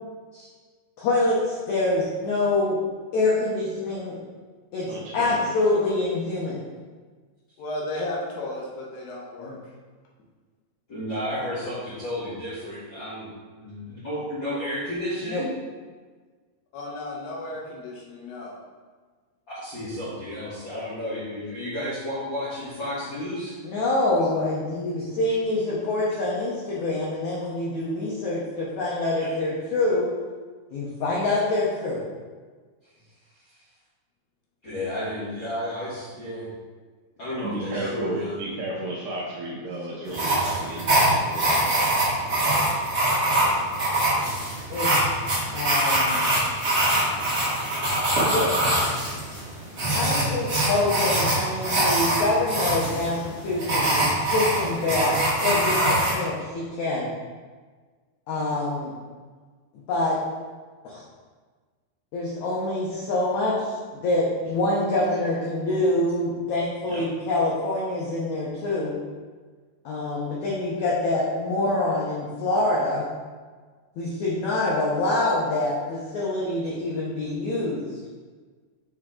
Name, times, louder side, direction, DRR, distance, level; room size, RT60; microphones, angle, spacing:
voice 1, 1.0-2.8 3.1-4.2 4.7-4.9 5.1-6.6 9.4-9.6 15.2-15.4 23.6-30.1 30.7-32.0 44.7-44.9 45.5-46.4 48.2-48.7 49.9-57.1 58.3-58.9 59.9-60.2 60.8-61.0 62.1-63.7 64.0-68.9 69.8-73.1 74.0-77.9, left 2 dB, 90° left, -6 dB, 1.6 m, -25 dB
voice 2, 4.8-5.5 37.4-41.7 66.9-67.1, right 1 dB, 75° right, -4 dB, 1.9 m, -33 dB
voice 3, 7.6-9.6 16.7-18.6, left 1 dB, 70° left, -2 dB, 2.5 m, -34 dB
voice 4, 10.9-13.3 13.6-15.5 19.6-23.5 34.6-36.4 37.2-38.3, left 1 dB, 55° left, -12 dB, 1.3 m, -32 dB
sound 1, 40.1-56.1, right 1 dB, 55° right, 1.0 m, -23 dB
7.1 x 3.8 x 3.7 m, 1.5 s
omnidirectional pair, 4.6 m